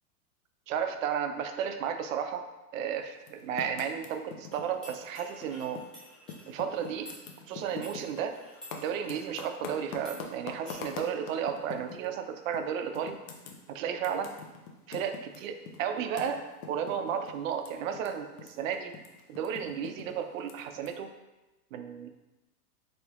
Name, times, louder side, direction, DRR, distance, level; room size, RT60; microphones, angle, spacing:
voice 1, 0.7-2.5 2.7-5.8 6.5-7.1 7.5-8.4 8.7-13.2 13.7-14.4 14.9-19.0 19.3-21.2 21.7-22.1, right 8 dB, 60° right, 7 dB, 0.5 m, -33 dB
Typing, 3.2-6.0 6.2-12.1 12.5-12.6 12.9-18.1 18.3-20.9, left 5 dB, 60° left, 0.8 m, -44 dB
sound 1, 4.5-9.5 10.0-10.2 10.7-10.9, equal, ahead, 0.5 m, -51 dB
4.2 x 3.3 x 2.9 m, 1.1 s
supercardioid pair, 145°, 46 cm